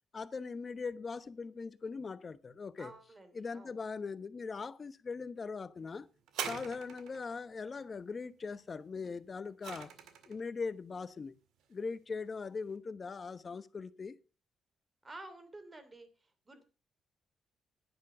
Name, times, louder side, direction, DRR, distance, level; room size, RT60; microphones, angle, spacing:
voice 1, 0.1-2.9 3.3-6.1 6.5-9.9 10.3-11.3 11.7-14.2, left 4 dB, 35° left, 1.0 m, -40 dB
voice 2, 2.8-3.7 15.0-16.1 16.5-16.6, right 2 dB, 25° right, 3.1 m, -50 dB
sound 1, 6.3-7.3 9.0-10.4 11.2-11.3, right 8 dB, 85° right, 1.9 m, -42 dB
10.5 x 10.0 x 5.8 m
cardioid pair, 90°, 0 cm